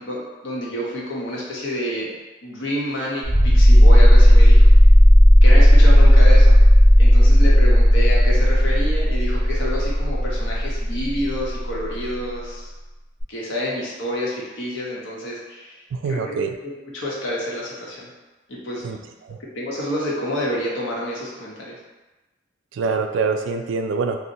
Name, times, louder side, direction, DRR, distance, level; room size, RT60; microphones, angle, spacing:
voice 1, 0.0-2.1 2.4-4.6 5.4-6.6 7.0-12.7 13.3-15.8 16.0-16.4 16.9-18.1 18.5-18.9 19.5-21.8, equal, 75° left, -4 dB, 0.8 m, -28 dB
sound 1, 3.2-11.7 13.2-13.3, equal, 30° left, 0.7 m, -12 dB
voice 2, 15.9-16.5 18.8-19.0 19.3-19.4 22.7-24.2, right 4 dB, 85° right, 5 dB, 0.3 m, -24 dB
2.6 x 2.1 x 4.0 m, 1.1 s
head